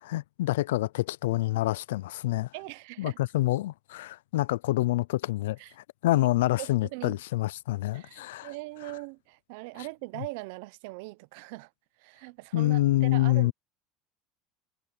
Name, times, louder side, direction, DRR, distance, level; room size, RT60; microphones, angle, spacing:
voice 1, 0.0-2.5 3.0-5.6 6.0-8.5 12.5-13.5, left 17 dB, 85° left, 0.4 m, -27 dB
voice 2, 2.5-3.2 5.6-5.7 6.6-7.2 7.9-11.7 12.0-13.5, right 24 dB, 75° right, 0.9 m, -41 dB
hypercardioid pair, 90°, 0 cm